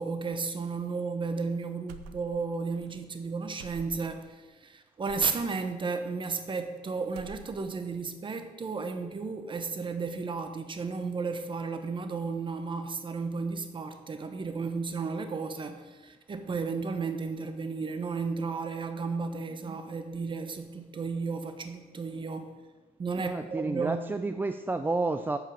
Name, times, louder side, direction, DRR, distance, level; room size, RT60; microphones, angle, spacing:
voice 1, 0.0-22.6 23.0-24.0, right 4 dB, 30° right, 7 dB, 1.1 m, -33 dB
sound 1, 1.9-2.6 2.8-3.0 3.6-4.2 5.1-5.4 6.2-6.8 7.0-7.8, right 5 dB, 90° right, 0.7 m, -48 dB
voice 2, 23.2-25.4, right 3 dB, 10° right, 9 dB, 0.3 m, -30 dB
8.3 x 5.6 x 7.3 m, 1.2 s
cardioid pair, 110°, 17 cm